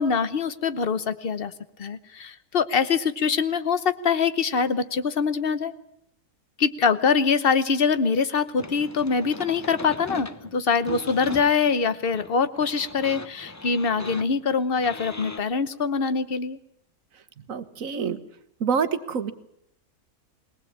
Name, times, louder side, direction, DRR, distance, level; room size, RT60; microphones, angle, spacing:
voice 1, 0.0-1.5 1.8-5.7 6.6-16.6, left 5 dB, 40° left, 13 dB, 1.1 m, -24 dB
sound 1, 8.6-15.4, left 2 dB, 20° left, 0.4 m, -38 dB
voice 2, 17.4-18.2 18.6-19.3, right 6 dB, 60° right, 12 dB, 1.5 m, -27 dB
21.5 x 19.0 x 8.6 m, 0.75 s
omnidirectional pair, 1.6 m